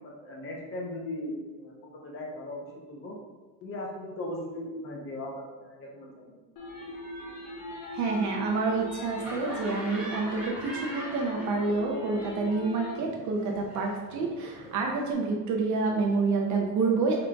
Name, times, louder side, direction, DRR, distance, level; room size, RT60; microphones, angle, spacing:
voice 1, 0.0-3.2 3.6-6.4, left 1 dB, 30° left, -1 dB, 0.6 m, -38 dB
sound 1, 6.6-13.0, left 1 dB, 55° left, 1.0 m, -40 dB
voice 2, 7.9-17.3, right 3 dB, 45° right, 0 dB, 0.5 m, -28 dB
Laughter, 9.2-11.9 12.2-15.1, right 1 dB, 5° right, 0.9 m, -42 dB
4.7 x 3.8 x 2.2 m, 1.3 s
cardioid pair, 170°, 41 cm